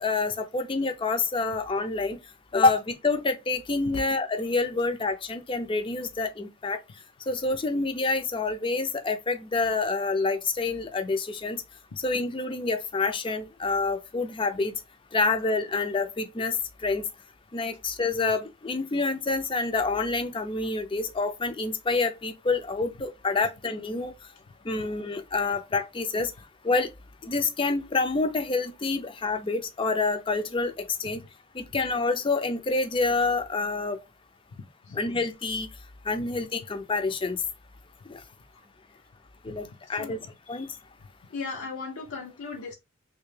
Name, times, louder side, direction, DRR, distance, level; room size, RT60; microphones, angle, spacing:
voice 1, 0.0-2.2 2.5-6.8 7.3-11.6 12.0-14.7 15.1-16.6 16.8-17.0 17.5-24.1 24.7-26.3 26.6-26.9 27.2-31.2 31.6-34.0 34.9-35.7 36.1-37.4 38.1-38.2 39.4-40.2 40.5-40.7, left 3 dB, 25° left, 0.4 m, -27 dB
voice 2, 41.3-42.7, left 4 dB, 80° left, 0.6 m, -37 dB
3.3 x 2.7 x 3.2 m
head